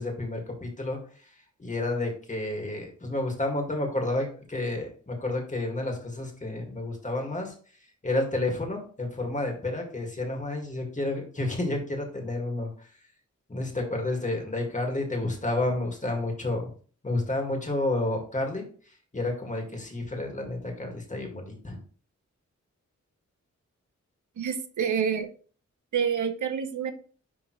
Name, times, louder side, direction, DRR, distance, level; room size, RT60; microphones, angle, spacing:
voice 1, 0.0-1.3 1.6-7.5 8.0-12.9 13.5-16.7 17.0-21.8, left 2 dB, 25° left, 2 dB, 2.0 m, -30 dB
voice 2, 24.4-25.3 25.9-26.9, right 7 dB, 80° right, 9 dB, 0.8 m, -27 dB
10.5 x 3.6 x 3.1 m, 0.42 s
wide cardioid pair, 110°, 30 cm